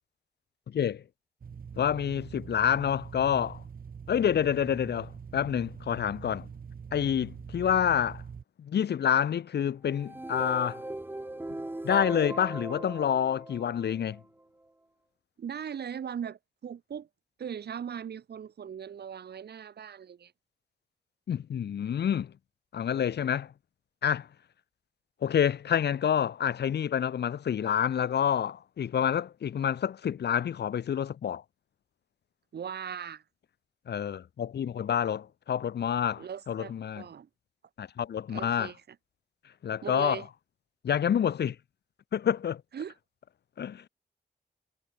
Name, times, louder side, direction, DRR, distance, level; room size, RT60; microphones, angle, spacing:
voice 1, 0.7-1.0 1.8-3.6 4.1-6.5 6.9-8.2 8.6-10.8 11.8-14.2 21.3-22.3 22.7-23.5 24.0-24.3 25.2-31.4 33.9-37.0 37.8-38.7 39.6-40.2 40.8-41.6 42.1-42.6 43.6-43.8, left 9 dB, 90° left, 0.7 m, -28 dB
sound 1, 1.4-8.4, right 6 dB, 60° right, 1.5 m, -44 dB
sound 2, 9.9-14.2, right 1 dB, 10° right, 1.2 m, -39 dB
voice 2, 15.4-17.1 17.4-20.3 32.5-33.2 36.1-37.3 38.3-39.0 39.8-40.3 42.7-42.9, right 8 dB, 75° right, 0.9 m, -39 dB
wide cardioid pair, 145°, 17 cm